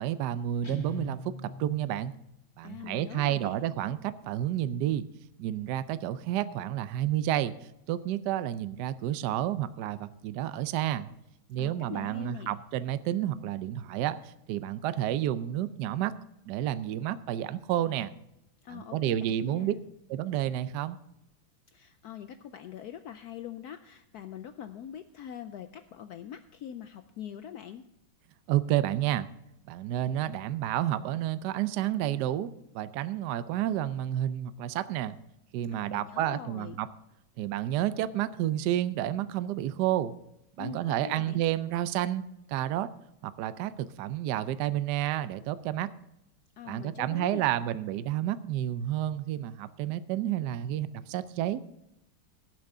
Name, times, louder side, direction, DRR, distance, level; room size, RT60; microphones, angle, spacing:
voice 1, 0.0-2.1 2.6-5.0 5.4-7.5 7.9-11.1 11.5-16.1 16.4-18.1 18.7-19.7 20.1-21.0 28.5-29.3 29.7-35.1 35.5-36.9 37.4-40.1 40.6-42.2 42.5-42.9 43.2-45.9 46.7-51.6, right 12 dB, 75° right, 14 dB, 1.0 m, -30 dB
Guitar, 0.6-2.3, left 2 dB, 20° left, 0.8 m, -41 dB
voice 2, 2.6-3.6 11.6-12.6 18.6-19.8 21.7-27.8 35.7-36.8 40.6-41.4 46.6-47.5, left 9 dB, 85° left, 10 dB, 0.8 m, -43 dB
17.5 x 7.7 x 3.5 m, 0.86 s
omnidirectional pair, 2.2 m